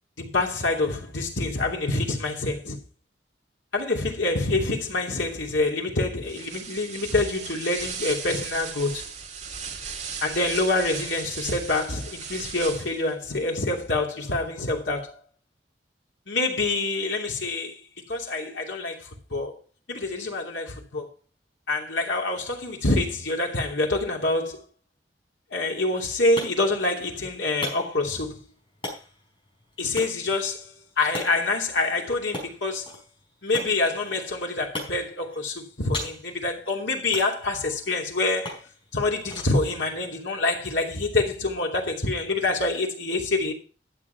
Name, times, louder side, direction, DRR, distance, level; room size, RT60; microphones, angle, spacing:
voice 1, 0.2-2.8 3.7-9.0 10.2-15.2 16.3-17.7 18.1-19.5 19.9-21.1 21.7-24.6 25.5-28.4 29.8-30.7 31.0-32.9 33.4-38.6 38.9-43.5, left 2 dB, 90° left, 2.9 m, -26 dB
sound 1, 6.2-13.1, right 6 dB, 40° right, 2.3 m, -36 dB
sound 2, 25.8-41.4, left 1 dB, 30° left, 4.6 m, -41 dB
12.5 x 7.5 x 4.6 m
head